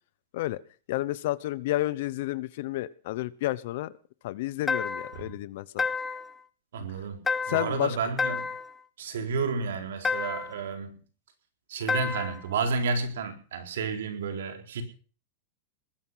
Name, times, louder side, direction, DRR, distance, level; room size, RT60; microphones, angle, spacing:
voice 1, 0.9-3.9 4.2-5.8 7.5-8.0, left 16 dB, 60° left, 18 dB, 0.9 m, -30 dB
sound 1, 4.7-5.2 5.8-6.3 7.3-7.8 8.2-8.7 10.0-10.6 11.9-12.4, left 5 dB, 15° left, 0.8 m, -30 dB
voice 2, 6.7-8.5 9.0-11.0 11.7-14.8, right 4 dB, 85° right, 6 dB, 4.1 m, -31 dB
20.5 x 11.0 x 5.7 m, 0.39 s
supercardioid pair, 145°, 0 cm